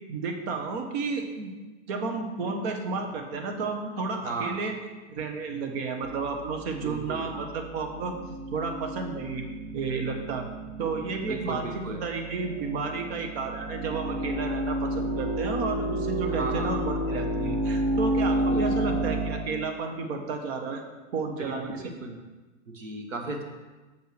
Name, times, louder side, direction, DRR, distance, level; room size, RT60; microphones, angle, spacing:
voice 1, 0.1-1.5 1.9-4.7 5.1-8.1 8.5-9.4 9.7-10.5 10.8-11.7 12.0-20.8 21.1-21.9, right 4 dB, 55° right, 4 dB, 1.6 m, -32 dB
voice 2, 4.2-4.6 6.8-7.3 11.2-12.0 16.3-16.7 18.3-18.7 21.4-22.2 22.7-23.4, right 3 dB, 85° right, 3 dB, 1.5 m, -35 dB
sound 1, 6.0-19.5, right 1 dB, 25° right, 1.4 m, -31 dB
6.9 x 5.7 x 6.1 m, 1.2 s
hypercardioid pair, 100°, 38 cm